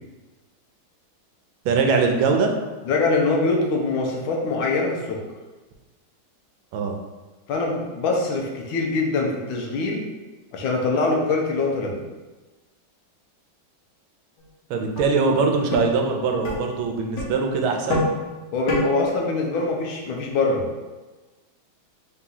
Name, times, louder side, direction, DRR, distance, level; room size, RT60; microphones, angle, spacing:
voice 1, 1.6-2.5 6.7-6.9 14.7-18.1, right 4 dB, 80° right, 3 dB, 1.4 m, -22 dB
voice 2, 2.8-5.2 7.5-10.0 10.5-11.9 18.5-20.7, left 3 dB, 80° left, 0 dB, 1.5 m, -23 dB
sound 1, 14.4-14.5 15.0-15.1 15.7-15.8 16.4-16.6 17.2-17.3 17.9-18.1 18.7-18.8, left 2 dB, 60° left, 1.6 m, -24 dB
4.0 x 2.9 x 3.7 m, 1.2 s
omnidirectional pair, 2.2 m